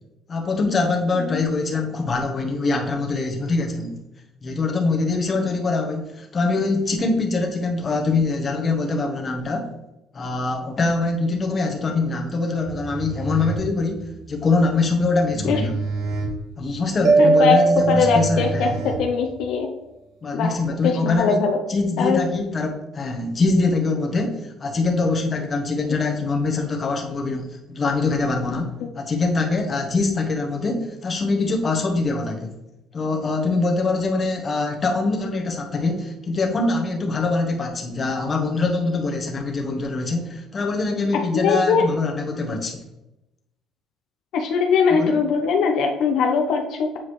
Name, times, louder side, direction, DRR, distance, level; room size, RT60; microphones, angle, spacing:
voice 1, 0.3-4.0 4.4-9.7 10.1-15.7 16.6-18.8 20.2-21.4 21.7-28.7 28.9-32.6 32.9-42.8 44.9-45.1, left 3 dB, 30° left, 2 dB, 1.0 m, -23 dB
sound 1, 12.6-19.5, right 2 dB, 90° right, 1.8 m, -31 dB
Mallet percussion, 17.0-19.1, right 4 dB, 45° right, 0.5 m, -19 dB
voice 2, 17.2-19.7 20.3-21.6 22.0-22.2 28.8-28.9 41.1-41.9 44.3-47.0, left 5 dB, 65° left, 3 dB, 0.6 m, -21 dB
7.3 x 4.7 x 3.1 m, 0.93 s
cardioid pair, 135°, 0 cm